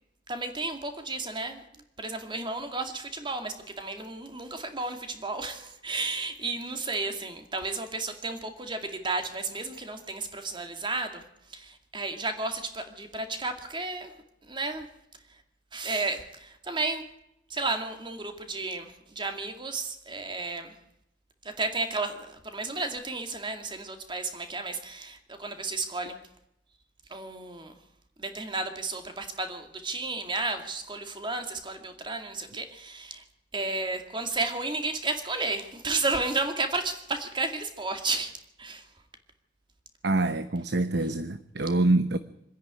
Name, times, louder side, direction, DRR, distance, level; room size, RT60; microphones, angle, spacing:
voice 1, 0.3-14.2 14.4-14.9 15.3-15.4 15.7-17.1 17.5-20.8 21.4-26.2 27.1-27.8 28.2-33.2 33.5-38.9, right 3 dB, 25° right, 6 dB, 2.3 m, -33 dB
voice 2, 40.0-42.2, right 2 dB, 65° right, 11 dB, 0.9 m, -25 dB
26.0 x 10.5 x 9.7 m, 0.82 s
head